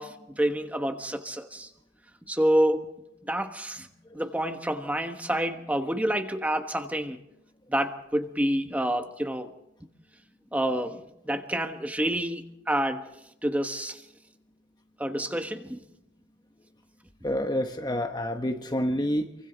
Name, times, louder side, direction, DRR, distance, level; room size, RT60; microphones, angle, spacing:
voice 1, 0.0-1.7 2.3-2.9 3.2-3.9 4.1-7.2 7.7-9.5 10.5-13.0 13.4-14.0 15.0-15.8, right 1 dB, 10° right, 6 dB, 1.2 m, -28 dB
voice 2, 17.2-19.4, equal, 20° left, 5 dB, 0.9 m, -28 dB
28.0 x 24.0 x 4.0 m, 0.81 s
head